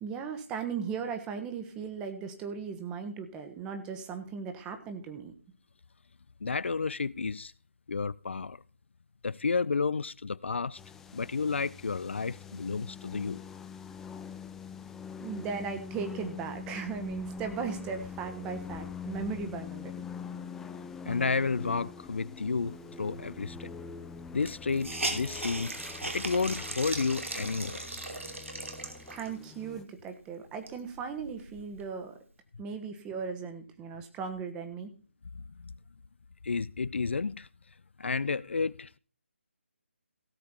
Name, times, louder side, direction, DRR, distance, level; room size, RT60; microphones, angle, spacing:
voice 1, 0.0-5.3 15.2-20.1 29.1-32.2 32.6-34.9, right 6 dB, 10° right, 1.3 m, -37 dB
voice 2, 6.4-7.5 7.9-8.6 9.2-10.8 11.1-13.4 21.1-23.7 24.3-25.7 26.1-27.8 35.3-35.7 36.4-37.5 38.0-39.0, left 4 dB, 65° left, 0.5 m, -31 dB
sound 1, 10.8-29.8, left 6 dB, 5° left, 0.5 m, -44 dB
Hiss, 23.6-23.7 23.9-24.0 24.4-29.4 30.0-30.1 30.5-31.8, right 2 dB, 85° right, 2.8 m, -38 dB
16.5 x 7.5 x 4.3 m
figure-of-eight pair, 155°, 7 cm